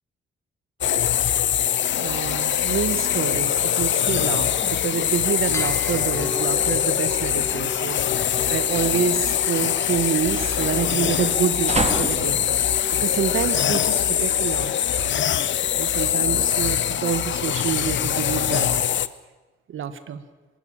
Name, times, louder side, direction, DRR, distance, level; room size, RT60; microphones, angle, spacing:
sound 1, 0.8-19.1, left 10 dB, 65° left, 0.8 m, -23 dB
voice 1, 2.0-12.4 13.0-14.9 15.7-18.7 19.7-20.2, right 8 dB, 75° right, 11 dB, 1.6 m, -27 dB
sound 2, 4.2-14.3, right 3 dB, 30° right, 2.4 m, -35 dB
sound 3, 5.5-16.6, left 2 dB, 10° left, 2.0 m, -39 dB
26.5 x 12.0 x 8.9 m, 1.2 s
cardioid pair, 90°, 21 cm